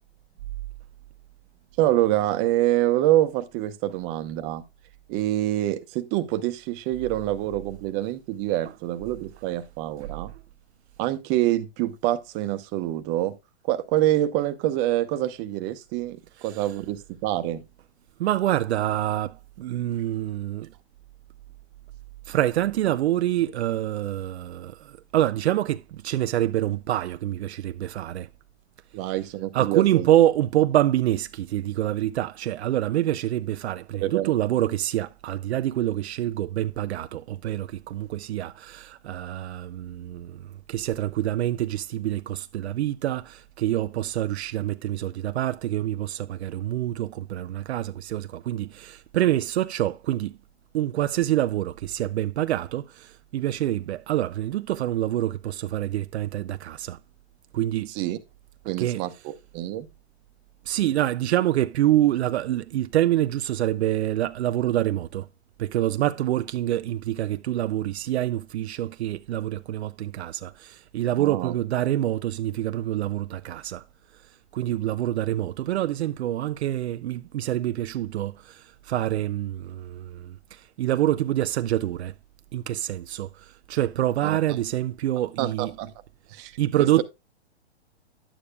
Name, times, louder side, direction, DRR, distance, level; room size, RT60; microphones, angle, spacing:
voice 1, 1.8-4.6 5.1-10.3 11.0-13.4 13.6-17.6 28.9-30.1 34.0-34.3 57.9-58.2 58.6-59.9 71.2-71.5 84.2-84.4 85.4-85.9 86.3-87.0, right 14 dB, 30° right, 0.9 m, -26 dB
voice 2, 18.2-20.7 22.3-28.3 29.5-50.4 50.7-57.0 57.5-57.9 58.8-59.0 60.7-65.3 65.6-73.8 74.5-82.1 82.5-85.7 86.6-87.0, right 13 dB, 70° right, 0.5 m, -26 dB
11.0 x 8.7 x 2.2 m
hypercardioid pair, 135°, 34 cm